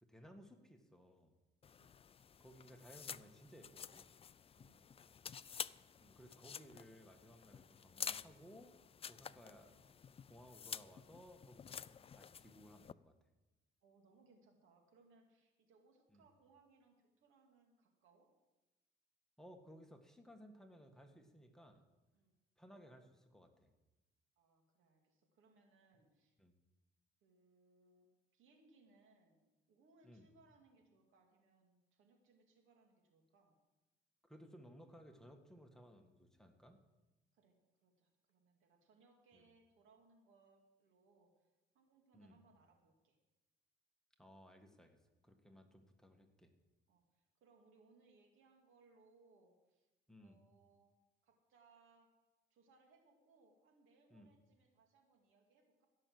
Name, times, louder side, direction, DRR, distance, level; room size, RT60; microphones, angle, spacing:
voice 1, 0.0-1.3 2.4-4.1 6.0-8.7 9.1-9.8 10.3-13.1 16.1-16.2 19.4-21.8 22.6-23.7 26.4-26.5 30.0-30.3 34.2-36.8 39.3-39.4 42.1-42.4 44.2-45.0 45.2-46.5 50.1-50.4 54.1-54.3, equal, 5° left, 4 dB, 1.6 m, -60 dB
sound 1, 1.6-12.9, left 7 dB, 30° left, 0.3 m, -50 dB
voice 2, 13.8-18.3 22.1-22.4 24.4-26.3 27.2-33.5 37.3-37.6 37.8-43.2 45.4-45.6 46.9-49.9 50.2-50.9 51.2-52.1 52.5-55.9, right 3 dB, 85° right, 3 dB, 2.4 m, -70 dB
16.0 x 6.5 x 7.8 m, 1.1 s
cardioid pair, 90°, 20 cm